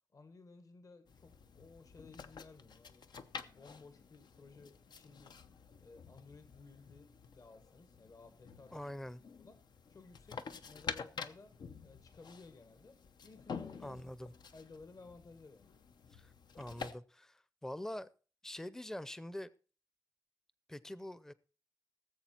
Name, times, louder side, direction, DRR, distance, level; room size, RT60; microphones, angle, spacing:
voice 1, 0.1-3.1 3.4-5.4 5.8-8.9 9.4-9.6 9.9-14.0 14.5-15.7, left 3 dB, 55° left, 1.5 m, -57 dB
sound 1, 1.1-16.9, left 6 dB, 85° left, 0.8 m, -49 dB
voice 2, 8.7-9.2 13.8-14.3 16.1-18.1 18.4-19.5 20.7-21.3, left 1 dB, 5° left, 0.6 m, -45 dB
18.0 x 7.7 x 4.4 m
wide cardioid pair, 140°, 7 cm